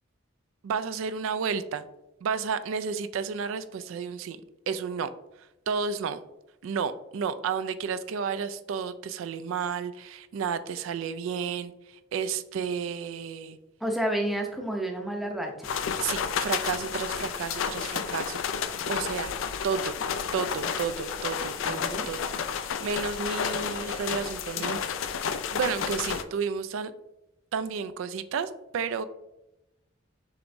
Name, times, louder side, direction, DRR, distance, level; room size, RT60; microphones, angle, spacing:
voice 1, 0.6-1.9 2.2-4.4 4.7-5.1 5.7-6.2 6.6-13.6 16.0-19.3 19.6-20.0 20.3-22.2 22.6-24.8 25.1-26.9 27.5-29.0, right 6 dB, 80° right, 11 dB, 0.3 m, -32 dB
voice 2, 13.8-15.7 21.6-22.1, right 1 dB, ahead, 1 dB, 0.6 m, -30 dB
sound 1, 15.6-26.2, left 7 dB, 80° left, 0.4 m, -31 dB
6.7 x 3.0 x 2.6 m, 0.92 s
head